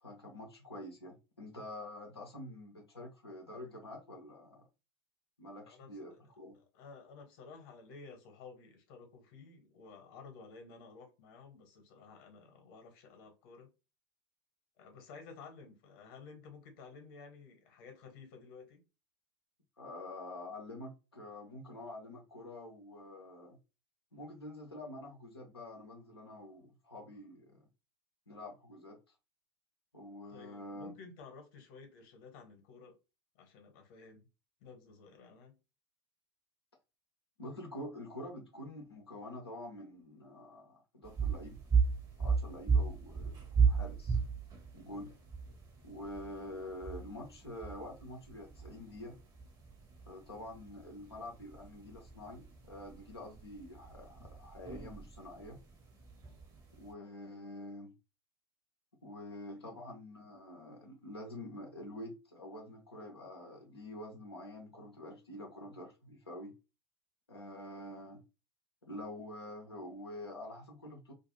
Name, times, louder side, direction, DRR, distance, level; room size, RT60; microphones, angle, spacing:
voice 1, 0.0-4.6 5.4-6.6 19.8-23.6 24.1-27.7 28.3-29.1 29.9-30.9 37.4-41.6 42.2-44.2 44.7-45.1 45.8-49.1 50.1-55.6 56.7-57.9 59.0-66.5 67.3-68.2 68.8-71.1, left 1 dB, 90° left, 0.6 m, -47 dB
voice 2, 5.7-6.1 6.7-13.7 14.8-18.8 30.3-33.0 33.3-34.3 34.6-35.6 59.5-59.6, left 4 dB, 55° left, 1.0 m, -53 dB
sound 1, 41.0-56.9, right 5 dB, 30° right, 0.9 m, -35 dB
2.5 x 2.3 x 3.0 m
figure-of-eight pair, 80°, 13 cm